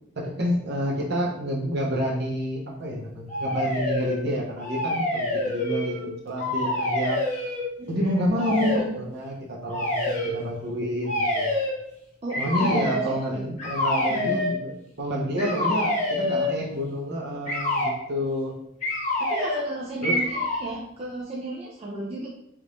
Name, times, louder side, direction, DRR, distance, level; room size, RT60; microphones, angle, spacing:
voice 1, 0.2-7.2 7.9-11.5 12.4-18.5 20.0-20.2, equal, 55° right, -2 dB, 0.8 m, -28 dB
sound 1, 3.3-4.2 4.6-6.1 6.3-7.6 8.4-8.9 9.7-10.3 11.0-11.8 12.3-13.1 13.6-14.5 15.4-16.6 17.5-18.0 18.8-19.7 20.0-20.7, left 1 dB, 35° left, 1.0 m, -26 dB
voice 2, 7.8-8.4 12.2-13.4 14.1-14.4 15.4-15.8 19.2-22.3, right 2 dB, 30° right, -4 dB, 0.4 m, -34 dB
3.5 x 2.5 x 3.0 m, 0.77 s
head